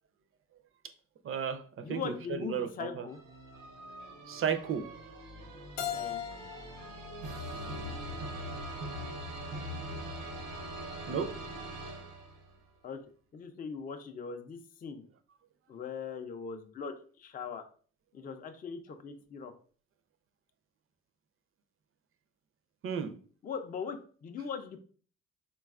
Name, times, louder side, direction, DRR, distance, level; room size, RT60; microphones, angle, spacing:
voice 1, 1.2-3.1 4.3-4.9 11.1-11.3 22.8-23.1, right 7 dB, 45° right, 9 dB, 0.4 m, -33 dB
voice 2, 1.8-3.2 5.9-6.2 12.8-13.0 13.3-15.0 15.7-17.6 18.1-19.5 23.4-24.8, left 6 dB, 30° left, 7 dB, 0.4 m, -40 dB
sound 1, 3.1-12.6, right 1 dB, 90° right, 0.8 m, -42 dB
Keyboard (musical), 5.8-8.6, left 10 dB, 85° left, 0.5 m, -41 dB
3.9 x 2.3 x 2.3 m, 0.43 s
cardioid pair, 90°, 30 cm